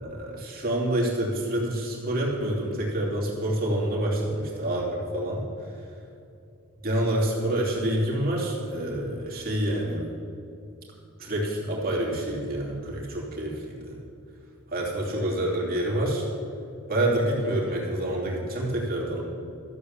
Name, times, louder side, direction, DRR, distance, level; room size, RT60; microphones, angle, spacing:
voice 1, 0.0-5.4 6.8-10.0 11.2-14.0 14.7-16.2 16.9-19.2, right 1 dB, 40° right, -3 dB, 2.9 m, -27 dB
13.5 x 7.8 x 7.2 m, 2.6 s
head